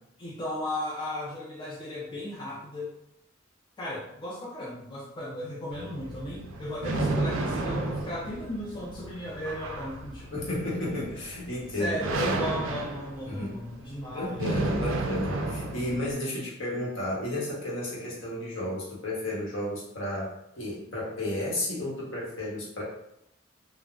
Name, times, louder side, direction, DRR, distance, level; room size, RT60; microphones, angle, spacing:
voice 1, 0.2-2.9 3.8-10.3 11.7-14.9, left 1 dB, 25° left, -5 dB, 0.4 m, -36 dB
sound 1, 5.7-16.1, right 2 dB, 75° right, 0.4 m, -32 dB
voice 2, 10.3-11.9 12.2-12.4 13.3-13.6 14.1-22.8, left 1 dB, 70° left, -5 dB, 1.0 m, -32 dB
3.7 x 2.1 x 2.3 m, 0.80 s
head